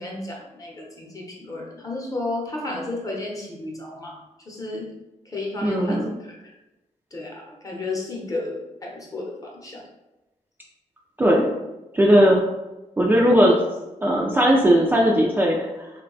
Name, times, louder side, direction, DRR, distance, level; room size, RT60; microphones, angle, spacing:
voice 1, 0.0-4.9 5.2-6.5 7.1-9.8, left 2 dB, 25° left, -2 dB, 0.8 m, -33 dB
voice 2, 5.6-6.1 11.2-11.5 11.9-12.4 13.0-13.6 14.0-15.9, equal, 15° right, -2 dB, 0.4 m, -18 dB
3.3 x 2.2 x 3.8 m, 1.0 s
wide cardioid pair, 130°, 13 cm